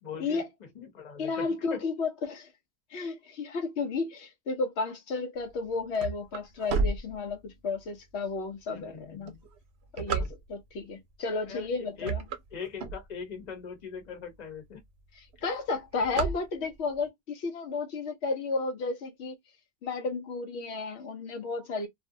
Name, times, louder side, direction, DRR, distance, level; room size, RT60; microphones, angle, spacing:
voice 1, 0.0-1.8 8.7-9.4 10.2-10.3 11.5-11.7 12.0-12.1 12.5-14.8, left 6 dB, 45° left, 0.9 m, -41 dB
voice 2, 1.2-2.5 2.9-9.3 9.9-10.2 10.5-12.2 15.1-19.4 19.8-21.9, left 4 dB, 85° left, 0.9 m, -33 dB
sound 1, 5.5-7.8 8.3-8.4 9.1-10.8 11.4-11.7 12.0-13.5 14.0-14.1 14.3-14.4 14.7-15.1 15.3-17.0, right 4 dB, 80° right, 0.8 m, -32 dB
2.5 x 2.0 x 2.6 m
omnidirectional pair, 1.1 m